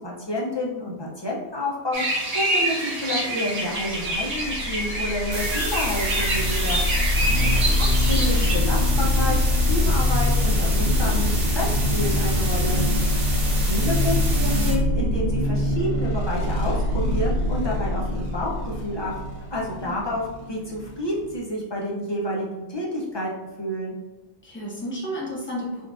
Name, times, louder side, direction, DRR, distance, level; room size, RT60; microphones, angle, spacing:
voice 1, 0.0-6.8 8.1-9.4 9.7-12.8 13.7-19.1 19.5-20.2 20.5-24.0, left 1 dB, 45° left, -4 dB, 0.3 m, -29 dB
sound 1, 1.9-8.5, right 1 dB, 45° right, 0.6 m, -27 dB
sound 2, 4.0-21.4, left 1 dB, 65° left, 1.0 m, -23 dB
sound 3, 5.3-14.7, right 2 dB, 85° right, 1.2 m, -31 dB
voice 2, 7.1-7.7 19.8-20.1 24.4-25.9, equal, 10° left, -6 dB, 0.8 m, -32 dB
3.7 x 2.2 x 2.4 m, 1.1 s
omnidirectional pair, 1.2 m